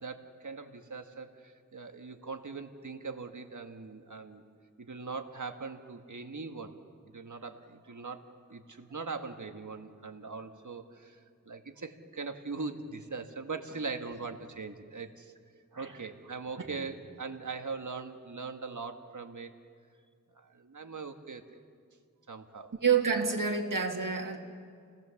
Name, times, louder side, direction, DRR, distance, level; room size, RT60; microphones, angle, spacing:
voice 1, 0.0-4.4 4.8-6.8 7.1-11.2 11.4-15.3 15.8-19.5 20.3-21.4 22.3-22.7, right 4 dB, 65° right, 6 dB, 1.6 m, -41 dB
voice 2, 22.8-24.4, right 6 dB, 85° right, 2 dB, 2.1 m, -28 dB
29.5 x 18.5 x 7.1 m, 2.1 s
wide cardioid pair, 55°, 32 cm